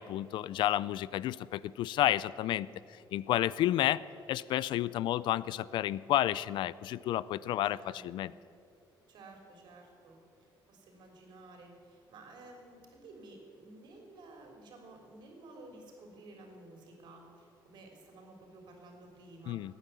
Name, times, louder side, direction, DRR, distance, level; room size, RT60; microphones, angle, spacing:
voice 1, 0.0-2.7 3.1-4.0 4.3-8.3 19.5-19.7, left 13 dB, 70° left, 19 dB, 0.4 m, -31 dB
voice 2, 7.6-8.3 9.1-10.2 10.7-19.7, right 2 dB, 60° right, 2 dB, 3.4 m, -53 dB
17.5 x 9.3 x 8.4 m, 2.5 s
cardioid pair, 165°, 8 cm